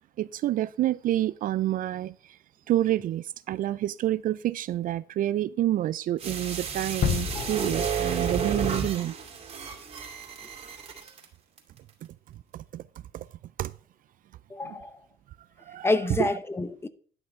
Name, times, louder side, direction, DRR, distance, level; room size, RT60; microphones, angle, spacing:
voice 1, 0.2-2.1 2.7-9.1 12.5-12.8 13.1-13.2 13.6-13.7 14.6-14.8 15.7-15.9 16.2-16.3, right 13 dB, 55° right, 0.4 m, -28 dB
sound 1, 6.2-11.2 11.6-11.7, right 6 dB, 40° right, 2.4 m, -32 dB
sound 2, 7.0-9.0 9.3-9.5, left 10 dB, 45° left, 0.5 m, -32 dB
voice 2, 14.5-15.0 15.8-16.9, left 2 dB, 15° left, 0.7 m, -28 dB
11.0 x 6.0 x 4.5 m
cardioid pair, 110°, 17 cm